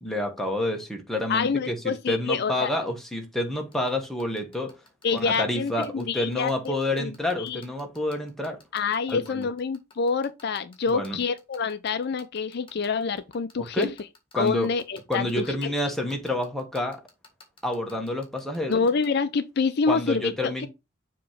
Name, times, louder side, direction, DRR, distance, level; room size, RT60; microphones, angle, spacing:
voice 1, 0.0-4.8 5.1-8.6 9.1-9.5 10.9-11.2 13.6-13.9 14.3-14.7 15.1-17.0 17.6-18.9 19.9-20.7, left 1 dB, ahead, 1.2 m, -28 dB
voice 2, 1.3-2.7 5.0-7.1 7.4-7.6 8.7-13.9 14.4-15.7 18.7-20.7, left 5 dB, 55° left, 0.4 m, -27 dB
sound 1, 3.5-19.1, left 4 dB, 25° left, 1.7 m, -51 dB
7.0 x 3.0 x 5.0 m
head